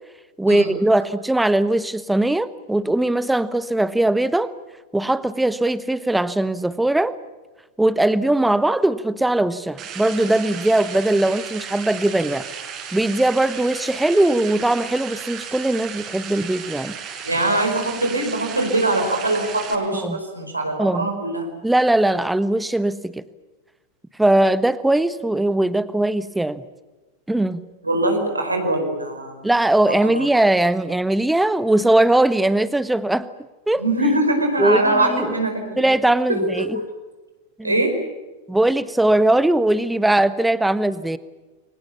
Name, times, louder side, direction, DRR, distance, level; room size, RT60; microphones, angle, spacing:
voice 1, 0.4-4.5 4.9-7.1 7.8-12.5 12.9-17.0 20.0-20.2 20.8-21.1 21.6-23.2 24.2-26.6 27.3-27.7 29.4-33.3 33.7-33.8 34.6-35.3 35.8-36.8 37.6-37.8 38.5-41.2, right 1 dB, 5° right, 15 dB, 1.2 m, -20 dB
sound 1, 9.8-19.7, right 7 dB, 35° right, 5.0 m, -35 dB
voice 2, 17.2-21.6 27.8-29.4 30.1-30.3 33.8-35.8 36.6-36.8 37.6-38.0, right 2 dB, 85° right, 4 dB, 5.0 m, -22 dB
30.0 x 23.5 x 7.2 m, 1.2 s
figure-of-eight pair, 90°, 0 cm